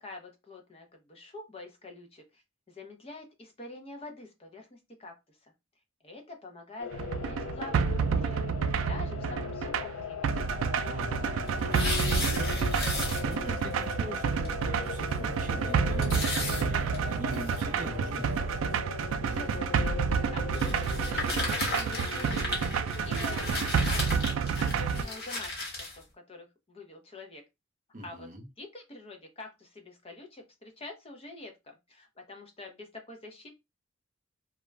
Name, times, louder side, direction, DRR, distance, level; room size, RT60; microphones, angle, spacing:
voice 1, 0.0-2.4 2.7-5.5 6.0-8.4 8.9-10.3 19.2-22.6 23.0-27.4 28.0-28.3 28.6-33.5, left 2 dB, 30° left, 0.6 m, -46 dB
sound 1, 6.8-25.2, left 7 dB, 70° left, 0.3 m, -40 dB
sound 2, 6.9-25.0, right 6 dB, 85° right, 0.3 m, -29 dB
voice 2, 10.8-18.3 27.9-28.4, right 1 dB, 40° right, 0.6 m, -42 dB
sound 3, 11.4-13.6 13.9-14.0 14.4-14.5 14.9-15.0 16.0-17.6 18.3-18.4 19.3-19.6 20.5-26.0, left 2 dB, 50° left, 1.1 m, -34 dB
2.4 x 2.1 x 3.2 m
head